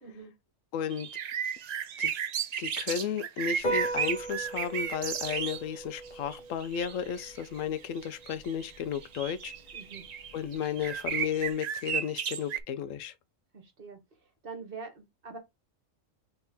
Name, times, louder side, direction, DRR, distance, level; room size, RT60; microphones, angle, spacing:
voice 1, 0.0-0.3 9.7-10.0 13.5-14.0 14.4-15.4, right 4 dB, 45° right, 1.3 m, -44 dB
voice 2, 0.7-1.1 2.0-2.1 2.6-9.5 10.3-13.1, left 8 dB, 80° left, 1.0 m, -33 dB
sound 1, 0.9-5.6 6.0-12.6, right 8 dB, 90° right, 0.3 m, -34 dB
Piano, 3.5-11.5, right 2 dB, 40° left, 1.6 m, -40 dB
4.2 x 3.4 x 3.5 m
omnidirectional pair, 1.3 m